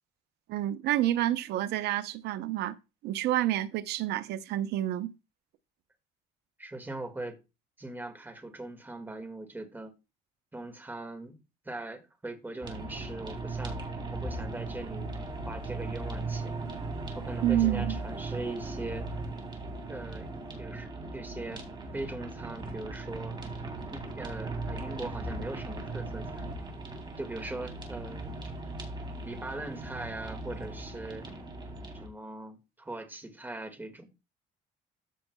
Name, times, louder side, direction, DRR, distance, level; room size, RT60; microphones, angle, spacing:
voice 1, 0.5-2.8 3.0-5.1 17.4-18.0, right 13 dB, 80° right, 0.7 m, -29 dB
voice 2, 6.6-7.4 7.8-9.9 10.5-11.4 11.7-13.8 14.1-15.1 15.4-16.6 17.1-19.1 19.9-21.7 21.9-23.4 23.9-26.5 27.2-28.4 29.2-31.3 32.0-34.1, right 2 dB, 10° right, 1.8 m, -40 dB
sound 1, 12.6-32.1, right 2 dB, 25° right, 3.1 m, -38 dB
14.0 x 6.2 x 2.3 m
cardioid pair, 110°, 17 cm